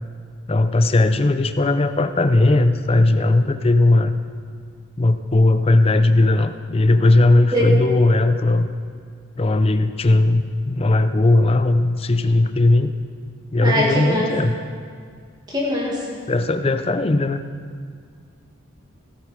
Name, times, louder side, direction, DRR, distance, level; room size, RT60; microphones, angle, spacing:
voice 1, 0.5-4.2 5.0-8.7 9.4-12.9 13.5-14.5 16.3-17.4, left 2 dB, 25° left, 10 dB, 0.4 m, -17 dB
voice 2, 13.6-14.3 15.5-16.2, equal, 20° right, -4 dB, 1.8 m, -22 dB
16.0 x 8.2 x 5.0 m, 2.1 s
head